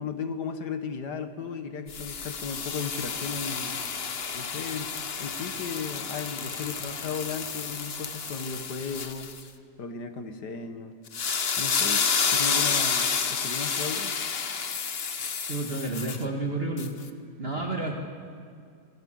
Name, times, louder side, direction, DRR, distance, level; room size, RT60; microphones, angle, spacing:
voice 1, 0.0-3.8 4.3-4.9 5.2-9.4 9.8-10.9 11.6-14.1 17.6-17.8, left 5 dB, 80° left, 7 dB, 2.1 m, -35 dB
sound 1, 1.9-9.4 11.1-16.2 16.8-16.9, left 6 dB, 40° left, 1.1 m, -30 dB
voice 2, 15.5-16.9 17.4-17.9, right 2 dB, 35° right, 0 dB, 2.1 m, -30 dB
26.5 x 21.0 x 7.8 m, 2.2 s
omnidirectional pair, 1.8 m